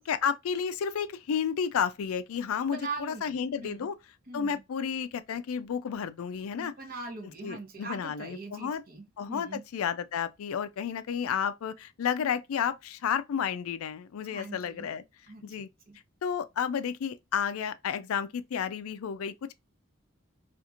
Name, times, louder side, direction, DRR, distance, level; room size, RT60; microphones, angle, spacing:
voice 1, 0.0-4.0 4.3-6.7 7.4-8.8 9.2-15.0 15.4-15.7 16.2-19.5, left 7 dB, 85° left, 0.4 m, -31 dB
voice 2, 2.6-3.9 4.3-4.6 6.6-9.6 14.3-14.9 15.3-16.0, right 3 dB, 40° right, 0.7 m, -42 dB
2.8 x 2.5 x 2.3 m
head